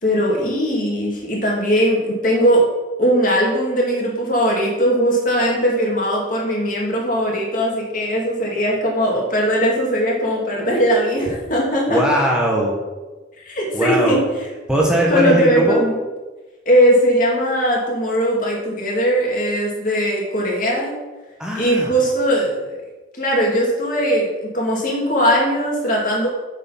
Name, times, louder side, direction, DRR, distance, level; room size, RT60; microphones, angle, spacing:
voice 1, 0.0-2.6 3.0-12.0 13.4-14.2 15.1-16.0 16.7-20.9 21.5-22.5 23.2-26.3, equal, 45° left, -2 dB, 2.4 m, -19 dB
voice 2, 11.9-12.8 13.7-14.2 14.7-15.9 21.4-21.9, equal, 5° right, -3 dB, 1.2 m, -19 dB
7.1 x 6.7 x 5.7 m, 1.2 s
head